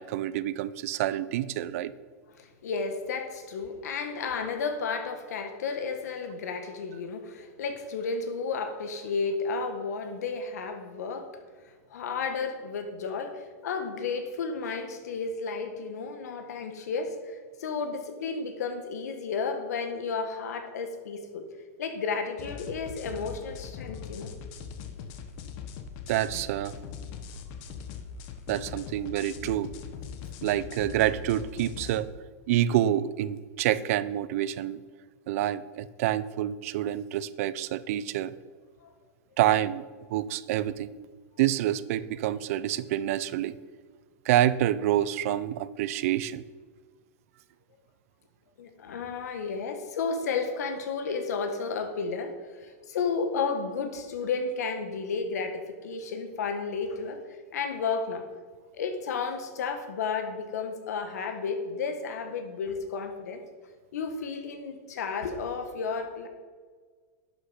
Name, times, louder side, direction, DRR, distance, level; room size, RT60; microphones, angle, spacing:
voice 1, 0.0-1.9 26.1-26.7 28.5-29.7 30.4-32.1 32.5-34.8 35.3-38.3 39.4-39.8 40.1-40.9 41.4-43.6 44.3-46.4, right 12 dB, 60° right, 16 dB, 0.6 m, -27 dB
voice 2, 2.4-21.5 21.8-24.3 38.8-38.9 48.6-58.3 58.7-63.4 63.9-66.3, left 5 dB, 80° left, 7 dB, 1.6 m, -32 dB
sound 1, 22.4-32.0, left 6 dB, 45° left, 1.2 m, -41 dB
11.5 x 6.4 x 5.7 m, 1.6 s
supercardioid pair, 140°, 9 cm